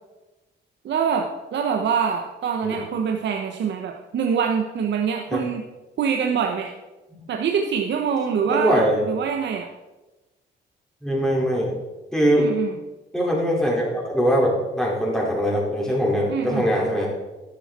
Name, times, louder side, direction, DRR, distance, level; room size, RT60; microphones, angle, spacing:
voice 1, 0.8-5.6 6.0-6.7 7.3-9.7 12.4-12.8 16.3-16.7, right 7 dB, 65° right, 3 dB, 1.1 m, -24 dB
voice 2, 8.5-9.0 11.0-11.7 12.1-12.5 13.1-17.1, equal, 5° left, -4 dB, 4.9 m, -22 dB
12.0 x 10.5 x 4.4 m, 1.1 s
cardioid pair, 90°, 20 cm